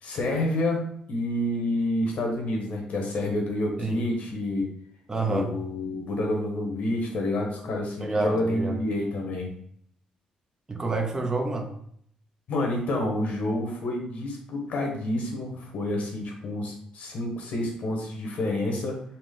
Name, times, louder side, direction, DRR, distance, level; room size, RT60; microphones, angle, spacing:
voice 1, 0.0-4.7 5.2-9.5 12.5-19.0, left 1 dB, 70° left, 1.3 m, -28 dB
voice 2, 5.1-5.5 8.0-8.8 10.7-11.7, right 3 dB, 30° right, 0.8 m, -28 dB
4.2 x 2.4 x 3.8 m
cardioid pair, 70°, 2 cm